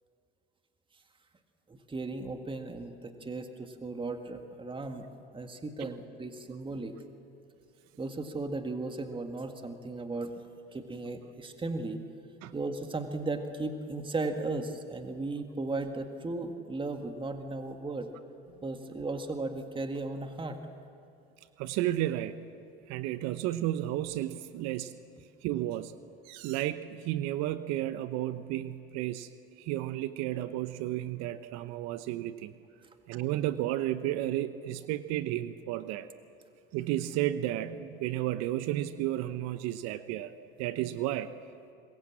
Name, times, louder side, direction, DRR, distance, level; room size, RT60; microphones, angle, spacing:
voice 1, 1.7-5.1 5.3-7.0 8.0-10.3 10.7-12.0 12.5-18.1 18.6-20.6, right 3 dB, 15° right, 6 dB, 1.9 m, -36 dB
voice 2, 21.6-22.3 22.9-24.9 25.4-25.9 26.2-29.3 29.6-32.5 33.1-36.1 36.7-40.3 40.6-41.3, right 13 dB, 60° right, 13 dB, 0.9 m, -32 dB
26.0 x 22.0 x 7.5 m, 2.5 s
hypercardioid pair, 80°, 30 cm